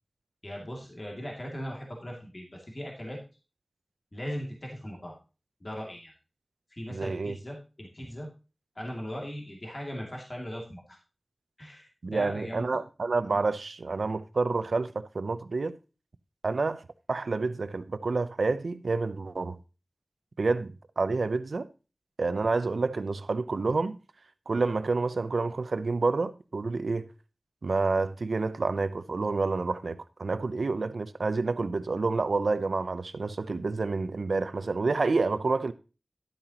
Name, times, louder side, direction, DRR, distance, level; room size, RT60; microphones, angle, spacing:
voice 1, 0.4-3.2 4.1-5.2 5.6-6.1 6.7-8.3 8.8-11.0 11.6-12.7, equal, 40° left, 2.5 m, -39 dB
voice 2, 6.9-7.4 12.0-15.8 16.4-16.8 17.1-19.6 20.4-21.7 22.2-24.0 24.5-27.1 27.6-35.7, right 3 dB, 85° right, 0.6 m, -28 dB
11.5 x 8.8 x 2.9 m
wide cardioid pair, 65°, 0 cm